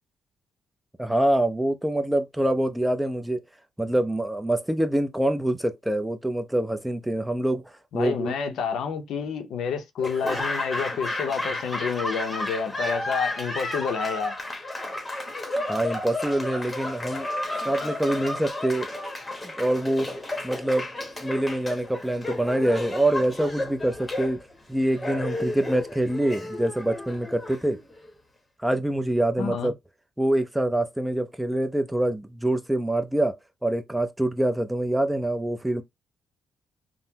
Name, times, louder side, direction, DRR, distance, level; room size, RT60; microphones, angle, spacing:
voice 1, 1.0-3.4 3.8-7.6 7.9-8.3 15.7-17.3 17.6-18.9 19.4-20.1 20.4-20.9 21.2-24.4 24.7-27.8 28.6-29.7 30.2-33.4 33.6-35.8, right 1 dB, 5° right, 0.5 m, -25 dB
voice 2, 7.9-14.4 29.4-29.7, left 6 dB, 75° left, 0.6 m, -29 dB
Laughter / Applause, 10.0-28.1, left 2 dB, 15° left, 0.9 m, -32 dB
3.6 x 2.0 x 2.8 m
cardioid pair, 90°, 0 cm